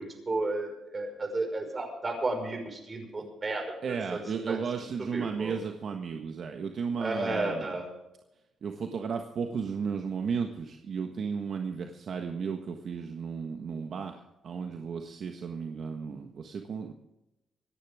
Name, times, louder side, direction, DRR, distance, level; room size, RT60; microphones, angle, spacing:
voice 1, 0.0-3.7 4.1-4.6 5.1-5.6 7.0-7.9, right 2 dB, 30° right, 4 dB, 5.3 m, -33 dB
voice 2, 3.8-7.7 8.6-16.9, right 6 dB, 55° right, 4 dB, 1.4 m, -34 dB
25.5 x 10.5 x 3.6 m, 0.92 s
cardioid pair, 90°, 0 cm